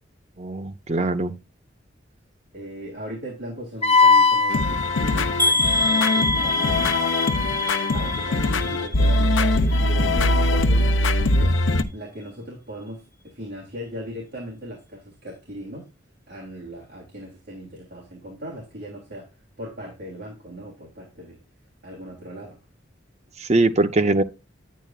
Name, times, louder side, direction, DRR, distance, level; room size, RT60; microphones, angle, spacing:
voice 1, 0.4-1.3 23.4-24.2, right 2 dB, 35° right, 0.7 m, -21 dB
voice 2, 2.5-7.0 7.9-11.6 11.9-15.9 16.3-19.3 19.6-21.4 21.8-22.6, equal, 65° right, 3.1 m, -38 dB
Wind instrument woodwind instrument, 3.8-8.5, left 4 dB, 30° left, 0.7 m, -23 dB
sound 1, 4.5-11.8, left 2 dB, 90° left, 0.8 m, -22 dB
sound 2, 5.4-9.4 9.7-10.3 10.7-10.9 11.2-11.3, left 1 dB, 20° right, 2.5 m, -26 dB
9.7 x 9.1 x 2.4 m
head